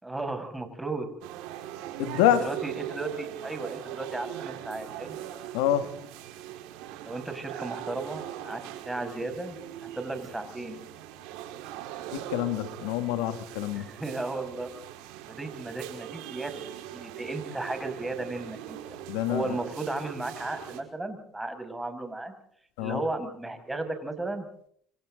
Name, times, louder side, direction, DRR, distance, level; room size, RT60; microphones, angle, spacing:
voice 1, 0.0-1.1 2.4-5.2 7.0-10.9 13.7-14.7 15.3-18.8 19.3-22.3 22.8-24.5, right 2 dB, 10° right, 6 dB, 6.5 m, -35 dB
sound 1, 1.2-20.8, right 12 dB, 80° right, 5.0 m, -41 dB
voice 2, 2.0-2.5 5.5-5.9 12.1-13.9 19.1-19.6 22.8-23.0, left 11 dB, 85° left, 9 dB, 2.1 m, -26 dB
28.0 x 26.0 x 3.9 m, 0.63 s
supercardioid pair, 95°, 0 cm